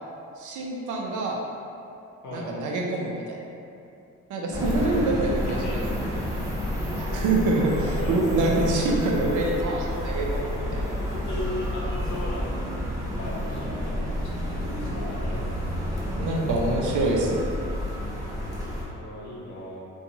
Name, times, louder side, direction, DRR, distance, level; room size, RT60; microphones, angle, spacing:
voice 1, 0.4-1.4 2.3-3.4 4.3-5.8 6.9-10.9 16.2-17.5, right 2 dB, 80° right, -1 dB, 0.5 m, -26 dB
sound 1, 4.5-18.8, equal, 10° right, 0.7 m, -30 dB
voice 2, 5.5-5.8 7.0-7.3 7.8-8.6 11.3-12.7 13.2-15.5 16.6-16.7 18.9-19.8, left 1 dB, 70° left, -5 dB, 0.7 m, -37 dB
2.6 x 2.3 x 2.8 m, 2.6 s
cardioid pair, 90°, 30 cm